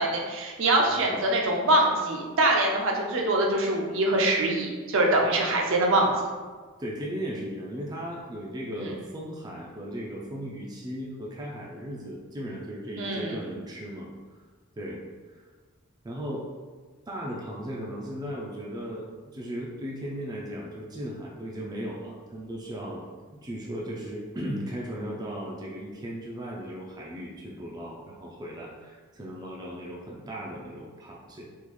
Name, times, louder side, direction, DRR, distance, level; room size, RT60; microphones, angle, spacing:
voice 1, 0.0-6.1 8.8-8.9 13.0-13.4, right 1 dB, 65° right, 0 dB, 0.6 m, -24 dB
voice 2, 0.9-1.2 6.8-14.1 14.8-15.0 15.3-15.4 16.0-16.7 17.1-23.0 23.3-31.5, equal, 20° right, -3 dB, 0.3 m, -36 dB
3.6 x 2.3 x 3.1 m, 1.5 s
head